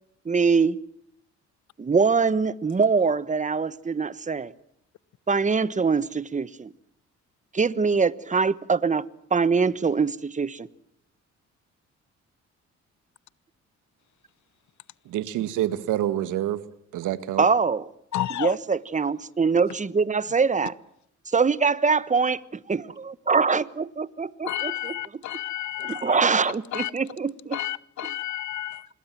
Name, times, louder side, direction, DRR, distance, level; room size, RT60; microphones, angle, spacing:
voice 1, 0.2-0.8 1.8-4.5 5.3-6.7 7.5-9.0 9.3-10.7 17.4-17.9 18.4-20.7 21.3-24.9 25.8-27.6, right 5 dB, 25° right, 1.2 m, -23 dB
voice 2, 15.1-16.6 16.9-17.5, right 12 dB, 85° right, 1.7 m, -27 dB
voice 3, 18.1-18.6 24.4-26.3 26.7-26.9 27.5-28.9, left 12 dB, 70° left, 1.0 m, -31 dB
26.5 x 21.5 x 7.5 m
cardioid pair, 90°, 30 cm